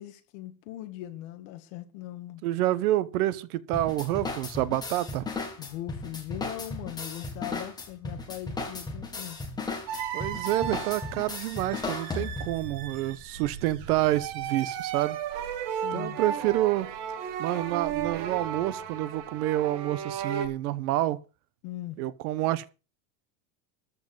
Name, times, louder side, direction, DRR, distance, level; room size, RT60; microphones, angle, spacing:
voice 1, 0.0-2.4 5.6-9.4 15.7-16.2 21.6-22.0, left 14 dB, 50° left, 2.1 m, -40 dB
voice 2, 2.4-5.3 10.1-15.2 15.9-16.9 17.4-21.2 22.0-22.7, right 15 dB, 65° right, 1.2 m, -28 dB
sound 1, 3.7-12.7, left 3 dB, 10° left, 2.0 m, -36 dB
sound 2, 9.9-20.5, right 8 dB, 40° right, 1.8 m, -35 dB
13.5 x 4.9 x 9.2 m
supercardioid pair, 180°, 48 cm